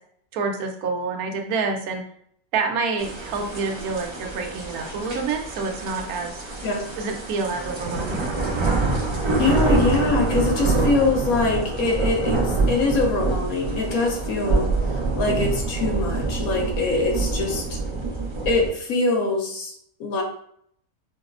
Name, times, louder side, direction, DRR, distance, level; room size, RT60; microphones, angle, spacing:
voice 1, 0.3-2.0 2.5-6.4 7.0-8.3, right 4 dB, 85° right, 4 dB, 1.1 m, -27 dB
sound 1, 3.0-18.7, right 3 dB, 35° right, 0.4 m, -26 dB
voice 2, 9.4-17.8 18.4-19.7 20.0-20.2, left 3 dB, 80° left, 1 dB, 1.2 m, -23 dB
4.8 x 2.0 x 2.4 m, 0.66 s
omnidirectional pair, 1.5 m